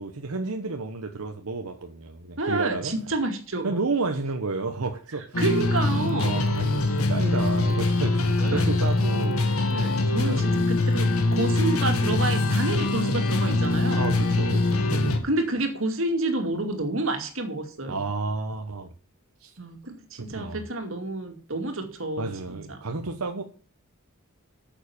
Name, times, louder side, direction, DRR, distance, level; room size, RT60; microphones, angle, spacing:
voice 1, 0.0-2.9 3.6-5.4 6.2-9.4 10.2-10.7 14.0-15.3 17.9-18.9 19.4-19.5 20.3-20.6 22.2-23.4, right 3 dB, 85° right, 1.0 m, -31 dB
voice 2, 2.4-3.8 5.4-6.3 8.5-8.7 9.7-14.1 15.2-18.0 19.6-22.6, right 2 dB, 65° right, 2.3 m, -29 dB
sound 1, 5.3-15.2, left 2 dB, 80° left, 1.9 m, -23 dB
9.0 x 7.3 x 7.0 m
head